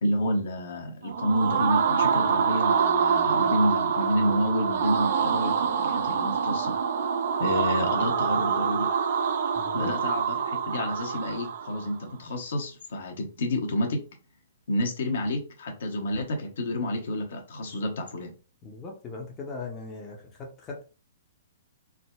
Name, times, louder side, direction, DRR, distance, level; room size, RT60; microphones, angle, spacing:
voice 1, 0.0-6.8 7.4-8.9 9.7-14.0 14.7-18.3, equal, 55° left, 2 dB, 0.7 m, -29 dB
sound 1, 1.0-11.9, right 6 dB, 55° right, 0.3 m, -26 dB
voice 2, 9.5-9.9 18.6-20.8, left 3 dB, 20° left, 1 dB, 0.6 m, -39 dB
3.4 x 2.0 x 2.2 m, 0.35 s
figure-of-eight pair, 115°, 0 cm